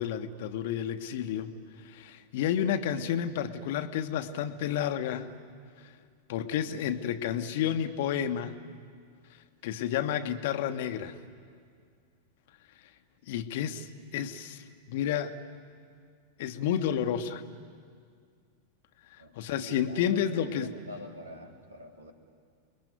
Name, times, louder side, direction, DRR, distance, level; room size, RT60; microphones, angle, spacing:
voice 1, 0.0-1.5 1.8-5.3 5.8-5.9 6.3-8.6 9.6-11.2 13.3-15.4 16.4-17.4 19.3-20.7, left 9 dB, 50° left, 10 dB, 1.3 m, -31 dB
voice 2, 19.2-22.1, equal, 80° right, 3 dB, 2.9 m, -44 dB
29.0 x 21.0 x 9.5 m, 2.1 s
figure-of-eight pair, 90°, 0 cm